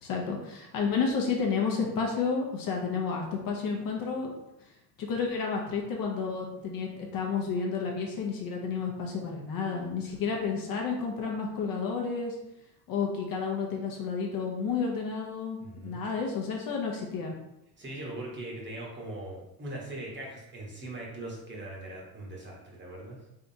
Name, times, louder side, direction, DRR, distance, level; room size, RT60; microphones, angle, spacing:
voice 1, 0.0-4.3 5.0-12.4 12.9-17.3, left 5 dB, 45° left, 0 dB, 0.8 m, -31 dB
voice 2, 15.6-16.0 17.8-23.2, right 1 dB, 25° right, -2 dB, 1.1 m, -40 dB
3.7 x 3.3 x 2.7 m, 0.90 s
supercardioid pair, 105°, 49 cm